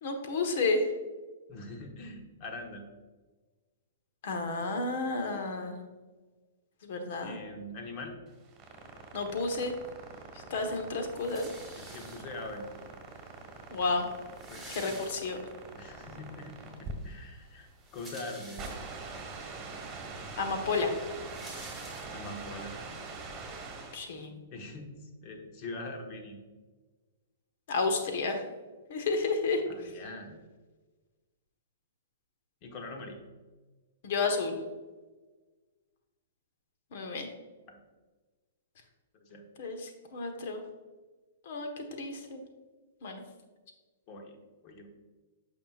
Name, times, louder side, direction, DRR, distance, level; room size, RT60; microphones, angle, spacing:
voice 1, 0.0-0.9 4.2-5.7 6.8-7.4 9.1-9.7 10.5-11.5 13.7-14.1 14.7-15.4 20.4-20.9 23.9-24.3 27.7-28.4 28.9-29.6 34.0-34.6 36.9-37.3 39.6-40.6 41.4-42.4 43.0-43.2, left 3 dB, 60° left, 5 dB, 1.3 m, -31 dB
voice 2, 1.5-2.9 7.2-8.2 10.7-10.8 11.7-12.7 14.5-15.1 15.8-18.6 22.1-22.7 24.5-24.9 25.2-26.4 29.7-30.4 32.6-33.2 37.7-37.8 39.2-39.5 44.1-44.4 44.6-44.9, left 2 dB, 40° left, 3 dB, 1.2 m, -43 dB
sound 1, 8.3-24.2, right 3 dB, 25° right, 1.7 m, -44 dB
sound 2, 11.1-12.6 13.4-13.5 13.7-13.8 14.1-15.7 16.1-16.2 17.6-19.1 19.8-19.9 20.1-22.5, right 1 dB, 5° left, 1.5 m, -49 dB
8.6 x 5.9 x 2.5 m, 1.3 s
hypercardioid pair, 130°, 0 cm